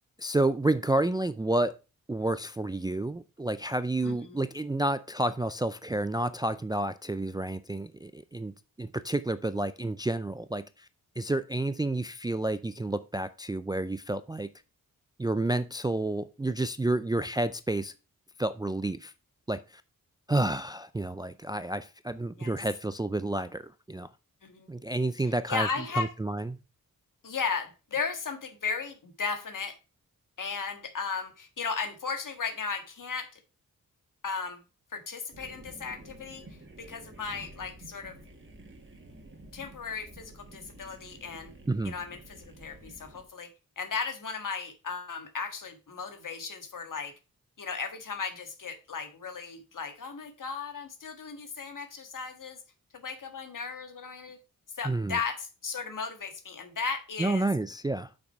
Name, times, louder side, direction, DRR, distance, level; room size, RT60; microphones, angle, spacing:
voice 1, 0.2-1.7 2.1-8.5 8.8-10.6 11.2-14.5 15.2-17.9 18.4-19.1 19.5-19.8 20.3-24.1 24.7-25.7 26.0-26.6 41.7-41.9 54.8-55.2 57.2-58.1, right 2 dB, 10° right, 0.4 m, -30 dB
voice 2, 4.0-4.4 22.4-22.5 24.4-24.7 25.5-26.1 27.2-29.8 30.4-33.3 34.2-34.6 34.9-38.2 39.5-41.5 41.8-43.5 43.8-47.1 47.6-52.6 52.9-54.4 54.8-57.5, left 5 dB, 65° left, 1.7 m, -36 dB
sound 1, 35.3-43.2, right 2 dB, 35° right, 2.1 m, -50 dB
6.4 x 6.1 x 4.6 m
wide cardioid pair, 85°, 34 cm